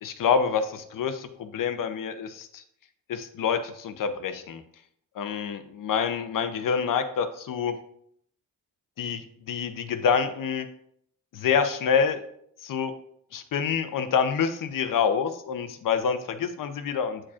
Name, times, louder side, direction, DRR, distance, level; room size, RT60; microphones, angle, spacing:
voice 1, 0.0-2.6 3.1-4.6 5.2-7.7 9.0-9.2 9.5-10.7 11.3-12.2 12.6-12.9 13.3-17.2, left 6 dB, 60° left, 9 dB, 0.7 m, -27 dB
8.5 x 4.8 x 2.4 m, 0.69 s
cardioid pair, 90°, 37 cm